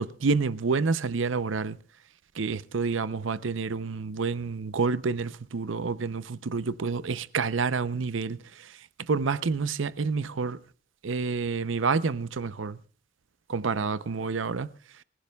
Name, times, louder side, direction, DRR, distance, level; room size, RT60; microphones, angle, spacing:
voice 1, 0.0-1.8 2.4-8.8 9.1-10.6 11.0-12.8 13.5-14.7, right 4 dB, 80° right, 0.6 m, -28 dB
24.5 x 15.0 x 2.3 m
head